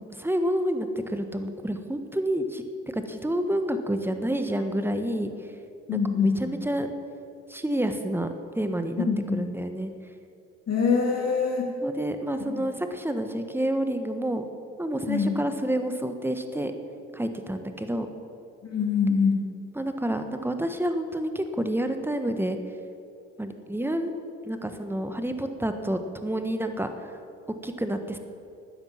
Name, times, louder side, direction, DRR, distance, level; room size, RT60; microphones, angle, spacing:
voice 1, 0.0-2.6 2.9-5.3 5.9-6.9 7.5-8.3 8.5-9.1 9.3-9.9 11.8-14.5 14.8-16.7 17.1-18.1 19.7-22.6 23.4-24.1 24.4-26.9 27.6-28.2, right 1 dB, 5° right, 7 dB, 1.3 m, -29 dB
voice 2, 5.9-6.5 9.1-9.4 10.7-11.7 12.4-12.6 15.1-15.4 18.6-19.4, left 5 dB, 45° left, -1 dB, 2.6 m, -24 dB
12.5 x 9.7 x 7.4 m, 2.6 s
hypercardioid pair, 55°, 36 cm